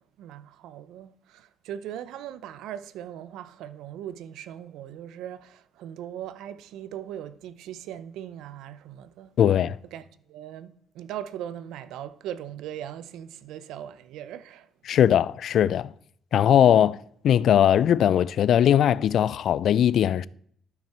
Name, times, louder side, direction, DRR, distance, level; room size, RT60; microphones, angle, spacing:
voice 1, 0.0-9.3 9.9-14.7, right 10 dB, 90° right, 0.6 m, -39 dB
voice 2, 9.4-9.8 14.9-15.9 16.3-17.0 17.2-20.3, left 10 dB, 70° left, 0.3 m, -20 dB
12.0 x 6.0 x 4.3 m
cardioid pair, 90°, 0 cm